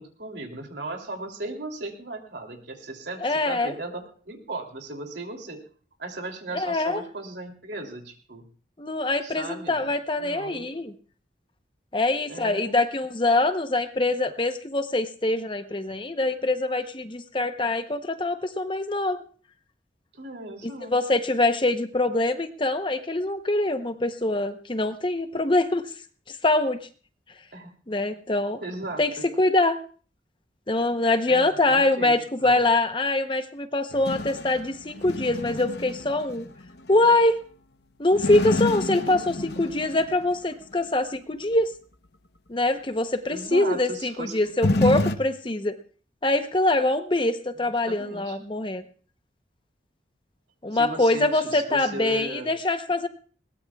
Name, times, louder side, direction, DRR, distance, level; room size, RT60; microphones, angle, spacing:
voice 1, 0.0-5.6 6.0-8.4 9.2-9.8 10.2-10.6 12.3-12.8 20.1-20.9 27.5-27.7 28.6-29.2 31.3-32.1 32.4-32.6 38.9-39.2 43.3-44.4 47.6-48.4 50.7-52.5, right 2 dB, 70° right, 3 dB, 2.9 m, -37 dB
voice 2, 3.2-3.7 6.5-7.0 8.8-10.9 11.9-19.2 20.6-25.9 26.3-26.8 27.9-28.6 29.0-29.1 29.4-29.8 30.7-36.5 36.9-37.4 38.0-39.2 39.6-41.7 42.5-45.8 46.2-48.8 50.6-53.1, left 2 dB, 25° left, 9 dB, 0.8 m, -24 dB
sound 1, 33.9-37.2 38.1-40.3 44.6-45.2, left 2 dB, 65° left, 0.9 m, -28 dB
21.0 x 18.5 x 2.3 m, 0.41 s
head